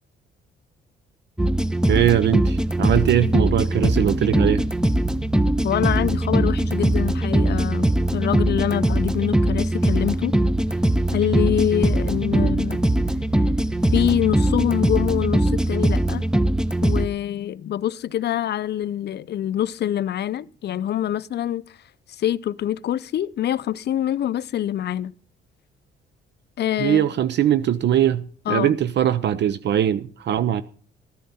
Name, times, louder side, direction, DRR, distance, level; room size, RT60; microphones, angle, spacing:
sound 1, 1.4-17.1, right 1 dB, 5° right, 0.5 m, -21 dB
voice 1, 1.9-4.6 12.3-12.5 26.8-30.6, right 10 dB, 60° right, 0.6 m, -21 dB
voice 2, 5.6-10.3 11.1-12.8 13.9-16.2 16.8-21.6 22.2-25.1 26.6-27.1 28.5-28.7, left 11 dB, 60° left, 0.6 m, -25 dB
13.5 x 10.0 x 4.2 m
cardioid pair, 90°, 20 cm